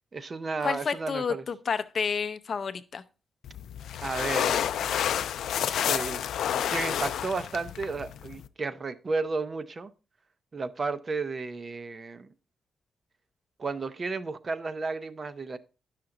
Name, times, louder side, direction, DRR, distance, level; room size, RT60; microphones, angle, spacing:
voice 1, 0.1-1.4 4.0-4.6 5.9-6.2 6.7-9.9 10.5-12.3 13.6-15.6, right 4 dB, 30° right, 0.5 m, -33 dB
voice 2, 0.6-3.0, left 6 dB, 40° left, 0.5 m, -30 dB
sound 1, 3.4-8.5, left 9 dB, 90° left, 0.4 m, -29 dB
10.5 x 5.8 x 3.8 m
wide cardioid pair, 165°, 0 cm